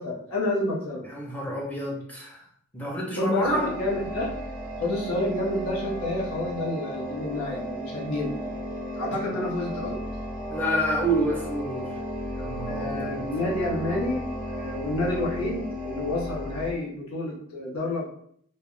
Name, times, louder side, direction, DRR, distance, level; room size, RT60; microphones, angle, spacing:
voice 1, 0.0-1.1 3.2-4.3 4.8-8.4 9.0-10.0 12.7-18.1, left 1 dB, 85° left, -4 dB, 0.8 m, -29 dB
voice 2, 1.0-2.4 2.7-3.7 9.1-9.3 10.5-11.9 12.3-13.2, right 1 dB, 5° left, -3 dB, 0.6 m, -28 dB
sound 1, 3.4-16.7, equal, 40° right, 0.4 m, -34 dB
2.3 x 2.1 x 3.6 m, 0.66 s
head